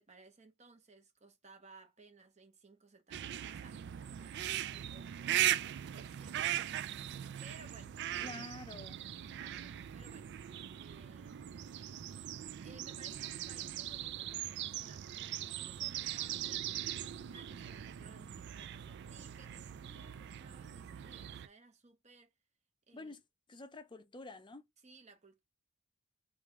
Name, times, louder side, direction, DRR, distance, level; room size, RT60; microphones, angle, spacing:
voice 1, 0.0-5.1 5.8-6.7 7.0-8.5 9.2-10.3 10.7-11.6 12.6-16.9 17.3-22.3 22.9-23.2 24.8-25.4, right 3 dB, 30° right, 1.0 m, -60 dB
sound 1, 3.1-21.5, right 11 dB, 50° right, 0.3 m, -40 dB
voice 2, 8.2-9.1 22.9-23.2 23.5-24.7, left 2 dB, 20° left, 0.6 m, -48 dB
3.4 x 3.3 x 4.6 m
head